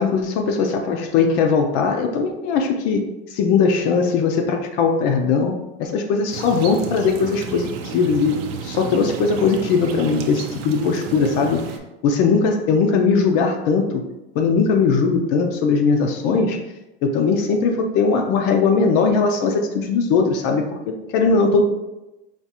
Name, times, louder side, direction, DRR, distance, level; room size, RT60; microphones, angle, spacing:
voice 1, 0.0-5.5 5.8-11.6 12.0-14.0 14.4-16.6 17.0-20.8 21.1-21.6, left 5 dB, 40° left, 4 dB, 0.4 m, -19 dB
sound 1, 6.3-11.8, right 6 dB, 85° right, 0.6 m, -32 dB
4.7 x 2.4 x 2.8 m, 0.97 s
supercardioid pair, 160°, 29 cm